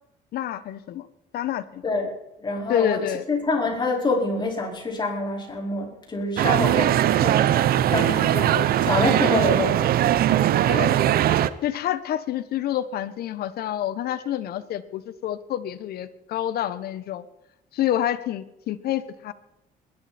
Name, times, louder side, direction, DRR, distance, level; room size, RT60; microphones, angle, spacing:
voice 1, 0.3-1.1 1.3-1.8 2.7-3.2 7.8-8.7 10.3-10.4 10.7-11.0 11.6-17.2 17.7-19.3, left 11 dB, 65° left, 14 dB, 1.2 m, -28 dB
voice 2, 2.4-3.0 3.3-8.3 8.9-10.3, left 3 dB, 25° left, 0 dB, 4.9 m, -26 dB
sound 1, 6.4-11.5, right 12 dB, 65° right, 0.8 m, -20 dB
21.5 x 12.0 x 4.4 m, 0.86 s
cardioid pair, 110°, 17 cm